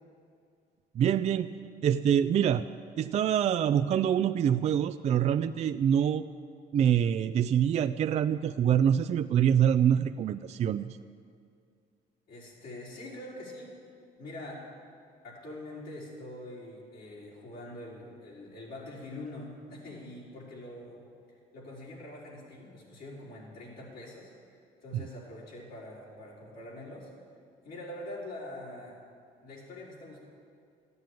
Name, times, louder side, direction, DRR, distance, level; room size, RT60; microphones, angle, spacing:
voice 1, 1.0-1.5 1.8-2.7 3.0-6.3 6.7-11.0 24.9-25.1, right 9 dB, 40° right, 10 dB, 0.4 m, -25 dB
voice 2, 12.3-13.7 14.2-14.6 15.2-21.0 21.3-24.3 24.8-27.1 27.6-29.0 29.4-30.2, left 1 dB, 65° left, -5 dB, 4.8 m, -44 dB
13.5 x 9.4 x 9.1 m, 2.3 s
cardioid pair, 110°, 17 cm